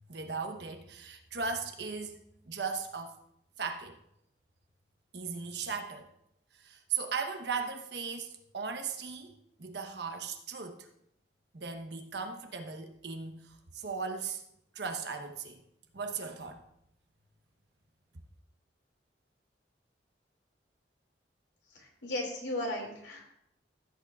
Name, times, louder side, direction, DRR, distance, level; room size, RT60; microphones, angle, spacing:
voice 1, 0.1-2.2 2.5-3.2 3.6-4.0 5.1-6.1 6.5-10.9 11.5-14.4 14.7-15.6 15.9-16.6, right 5 dB, 70° right, 6 dB, 1.1 m, -37 dB
voice 2, 21.7-23.4, left 1 dB, 85° left, 0 dB, 2.6 m, -36 dB
15.0 x 8.2 x 2.5 m, 0.76 s
head